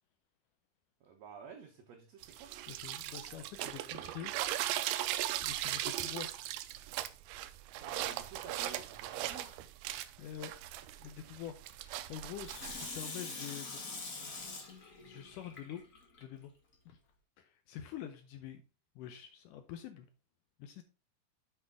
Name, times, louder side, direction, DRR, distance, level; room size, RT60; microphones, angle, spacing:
voice 1, 1.0-2.5 3.6-4.3 7.8-9.6, right 6 dB, 65° right, 1.7 m, -51 dB
sound 1, 2.2-13.0, right 14 dB, 85° right, 2.5 m, -38 dB
voice 2, 2.7-4.3 5.4-6.4 10.2-10.6 11.0-13.8 15.0-15.8 16.2-16.5 16.9-17.0 17.4-18.6 19.0-20.1 20.6-20.8, left 10 dB, 80° left, 1.9 m, -46 dB
Water tap faucet / Sink (filling or washing), 12.4-16.2 16.7-16.8, left 3 dB, 55° left, 0.8 m, -44 dB
8.1 x 5.7 x 3.5 m
omnidirectional pair, 4.3 m